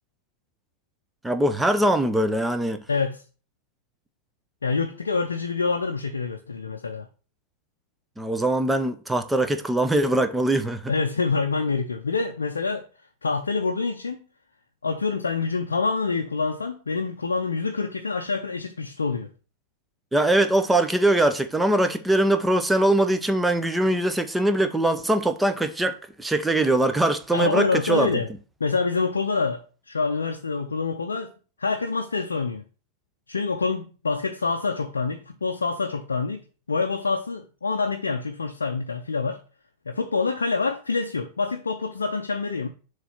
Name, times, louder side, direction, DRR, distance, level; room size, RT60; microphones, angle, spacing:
voice 1, 1.2-2.8 8.2-10.9 20.1-28.2, right 1 dB, 5° right, 0.7 m, -22 dB
voice 2, 2.9-3.2 4.6-7.1 10.9-12.9 13.2-14.2 14.8-19.3 27.3-28.3 28.6-31.3 31.6-32.6 33.3-36.4 36.7-39.4 39.9-42.7, left 4 dB, 75° left, 0.5 m, -26 dB
6.8 x 3.2 x 5.7 m
figure-of-eight pair, 90°, 0 cm